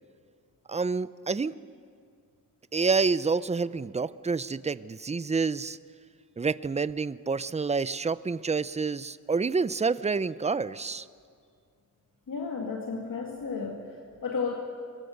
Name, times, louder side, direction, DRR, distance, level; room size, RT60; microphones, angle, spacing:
voice 1, 0.7-1.5 2.7-5.8 6.4-11.1, right 4 dB, 20° right, 16 dB, 0.5 m, -28 dB
voice 2, 12.3-14.5, left 5 dB, 65° left, 0 dB, 2.3 m, -33 dB
25.0 x 22.0 x 6.6 m, 2.2 s
wide cardioid pair, 105°, 34 cm